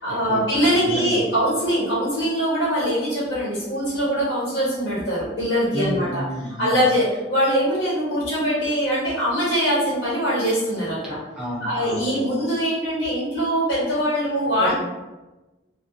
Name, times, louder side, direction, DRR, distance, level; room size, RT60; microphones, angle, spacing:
voice 1, 0.0-6.2 6.6-11.2 11.6-14.7, equal, 70° left, -8 dB, 1.3 m, -22 dB
voice 2, 0.8-1.3 5.7-6.9 11.4-12.0 14.6-14.7, equal, 5° right, -6 dB, 0.4 m, -30 dB
2.5 x 2.1 x 2.4 m, 1.1 s
head